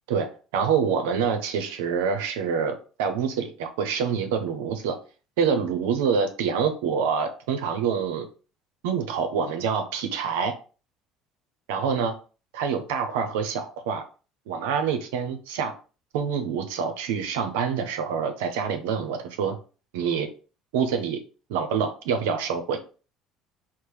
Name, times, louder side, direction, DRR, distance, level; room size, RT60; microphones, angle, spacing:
voice 1, 0.1-5.0 5.4-8.3 8.8-10.5 11.7-12.1 12.5-14.0 14.5-15.7 16.1-19.6 19.9-20.3 20.7-21.2 21.5-22.8, right 6 dB, 90° right, 7 dB, 0.6 m, -26 dB
4.4 x 2.1 x 3.3 m, 0.35 s
supercardioid pair, 95°, 0 cm